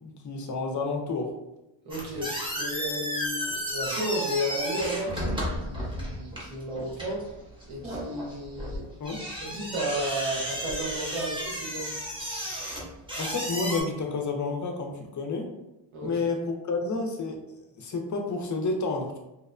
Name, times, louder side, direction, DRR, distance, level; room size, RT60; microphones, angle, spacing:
voice 1, 0.0-1.4 9.0-9.2 13.2-15.5 16.0-19.2, left 3 dB, 40° left, 2 dB, 0.4 m, -30 dB
sound 1, 1.9-13.8, equal, 10° right, 0.6 m, -33 dB
voice 2, 1.9-7.3 7.7-8.8 9.4-11.9 15.9-16.1, right 1 dB, 85° right, -3 dB, 1.0 m, -33 dB
2.8 x 2.1 x 2.4 m, 0.95 s
cardioid pair, 110°, 49 cm